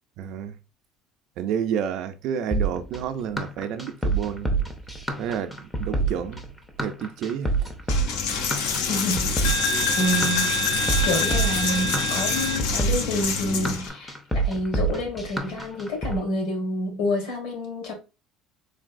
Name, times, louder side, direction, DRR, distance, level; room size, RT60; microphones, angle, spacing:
voice 1, 0.2-0.5 1.4-4.6 5.2-5.5 5.8-6.5 6.8-7.5, right 8 dB, 55° right, 0.4 m, -29 dB
sound 1, 2.5-16.2, right 3 dB, 5° left, 0.5 m, -27 dB
Coin (dropping), 7.9-13.9, left 4 dB, 90° left, 0.6 m, -25 dB
voice 2, 8.9-10.6 11.0-17.9, left 1 dB, 75° left, 1.9 m, -28 dB
3.8 x 2.7 x 2.4 m
cardioid pair, 170°, 0 cm